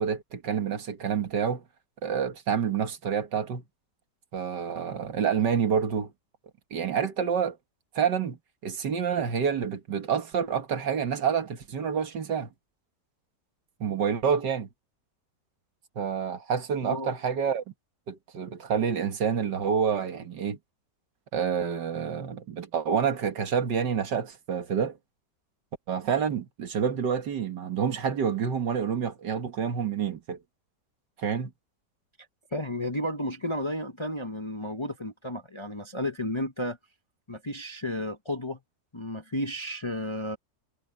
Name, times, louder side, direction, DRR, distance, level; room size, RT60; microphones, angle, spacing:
voice 1, 0.0-1.6 2.0-3.6 4.3-6.1 6.7-7.6 7.9-8.4 8.6-12.5 13.8-14.7 16.0-17.6 18.1-20.6 21.3-25.0 25.9-30.4 31.2-31.5, right 7 dB, 75° right, 2.1 m, -28 dB
voice 2, 32.5-36.8 37.3-38.6 38.9-40.4, left 1 dB, 20° left, 0.8 m, -32 dB
omnidirectional pair, 1.9 m